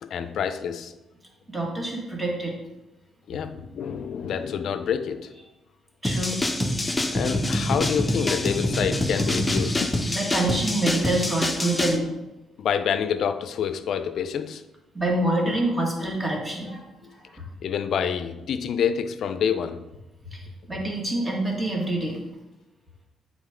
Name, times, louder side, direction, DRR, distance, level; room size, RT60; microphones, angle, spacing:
voice 1, 0.0-1.0 3.3-5.3 7.1-10.0 12.6-14.6 17.6-19.9, left 7 dB, 70° left, 0.4 m, -27 dB
voice 2, 1.5-2.6 6.0-6.4 10.1-12.1 14.9-17.4 20.3-22.2, right 1 dB, 20° right, 1.7 m, -26 dB
sound 1, 6.0-12.0, left 1 dB, 15° left, 0.7 m, -25 dB
8.0 x 4.0 x 3.7 m
cardioid pair, 90°, 0 cm